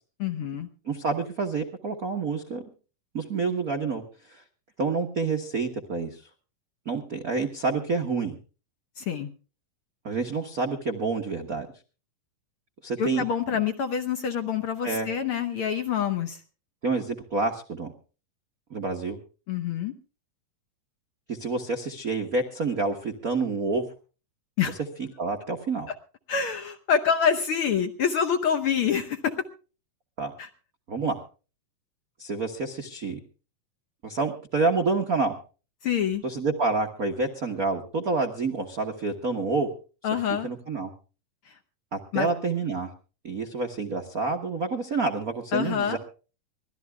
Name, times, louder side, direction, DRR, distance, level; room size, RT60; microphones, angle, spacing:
voice 1, 0.2-0.7 9.0-9.3 13.0-16.4 19.5-19.9 24.6-24.8 26.3-29.4 30.4-30.5 35.8-36.2 40.0-40.5 41.5-41.6 42.1-42.3 45.5-46.0, left 7 dB, 75° left, 8 dB, 1.2 m, -26 dB
voice 2, 0.8-2.6 3.1-4.0 4.3-4.4 4.8-6.2 6.8-8.4 10.0-11.7 12.8-13.2 14.8-15.1 16.8-17.9 18.7-19.2 21.3-23.9 25.0-25.9 30.2-30.3 30.9-31.2 32.2-33.2 34.0-35.3 36.2-39.7 40.4-40.9 41.9-42.9 43.2-46.0, right 3 dB, 90° right, 5 dB, 0.7 m, -28 dB
24.0 x 17.5 x 2.3 m, 0.36 s
omnidirectional pair, 3.8 m